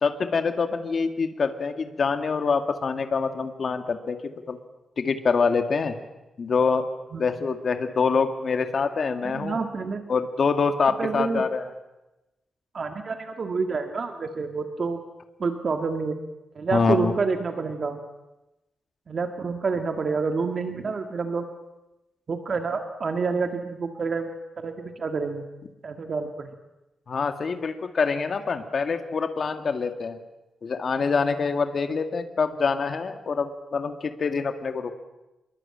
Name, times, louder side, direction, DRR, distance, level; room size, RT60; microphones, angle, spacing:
voice 1, 0.0-4.6 5.0-6.0 6.4-6.9 7.2-9.6 10.1-11.6 16.7-17.1 27.1-30.2 30.6-34.9, left 5 dB, 45° left, 7 dB, 2.1 m, -25 dB
voice 2, 9.2-10.0 11.0-11.4 12.7-15.0 15.4-16.2 16.6-18.0 19.1-21.5 22.3-24.3 24.6-25.5 25.8-26.5, right 4 dB, 40° right, 6 dB, 1.7 m, -28 dB
26.0 x 23.0 x 8.8 m, 1.0 s
wide cardioid pair, 155°, 0 cm